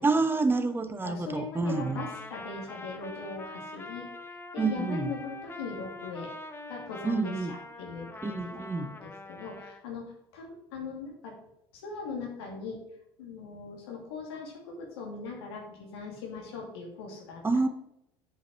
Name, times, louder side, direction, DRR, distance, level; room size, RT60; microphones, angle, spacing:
voice 1, 0.0-2.1 4.6-5.1 7.0-7.6 8.2-8.9 17.4-17.7, right 3 dB, 15° right, 9 dB, 1.0 m, -28 dB
voice 2, 1.0-4.1 4.5-6.3 6.7-7.3 7.8-11.3 11.8-12.8 13.2-17.4, left 4 dB, 85° left, -1 dB, 2.6 m, -40 dB
Trumpet, 1.6-9.8, left 2 dB, 15° left, 1.1 m, -44 dB
8.0 x 5.4 x 4.7 m, 0.80 s
supercardioid pair, 90°, 13 cm